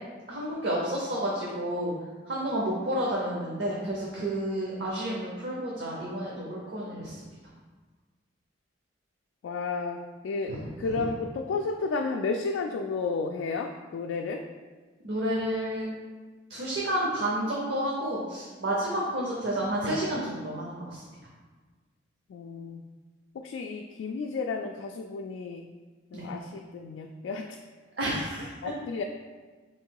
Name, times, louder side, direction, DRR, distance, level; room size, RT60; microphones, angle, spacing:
voice 1, 0.3-1.9 2.3-7.2 10.5-11.0 15.0-15.9 16.5-21.0 26.1-26.3 28.0-28.5, right 1 dB, 65° right, -4 dB, 0.7 m, -30 dB
voice 2, 9.4-10.0 10.2-14.4 22.3-22.8 23.3-25.6 26.1-27.6 28.4-29.0, left 4 dB, 90° left, 3 dB, 0.3 m, -32 dB
3.6 x 3.1 x 4.5 m, 1.4 s
head